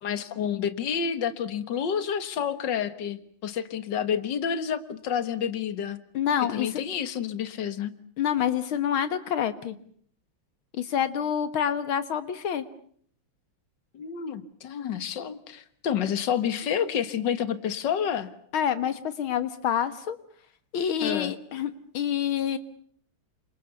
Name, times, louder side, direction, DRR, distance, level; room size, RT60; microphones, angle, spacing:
voice 1, 0.0-6.0 6.5-7.9 13.9-18.3 21.0-21.3, left 8 dB, 60° left, 12 dB, 2.2 m, -29 dB
voice 2, 6.1-6.8 8.2-9.8 10.7-12.6 18.5-20.2 20.7-22.6, left 9 dB, 85° left, 12 dB, 2.2 m, -27 dB
29.5 x 26.5 x 7.0 m, 0.62 s
omnidirectional pair, 2.2 m